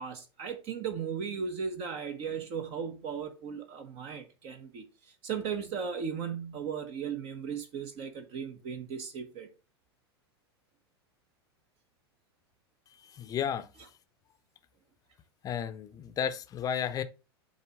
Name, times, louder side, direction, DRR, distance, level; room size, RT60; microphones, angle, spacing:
voice 1, 0.0-4.9 5.2-9.5, right 6 dB, 40° right, 1.1 m, -36 dB
voice 2, 13.1-13.7 15.4-17.0, left 8 dB, 25° left, 0.7 m, -32 dB
7.7 x 2.9 x 4.8 m
figure-of-eight pair, 90°, 14 cm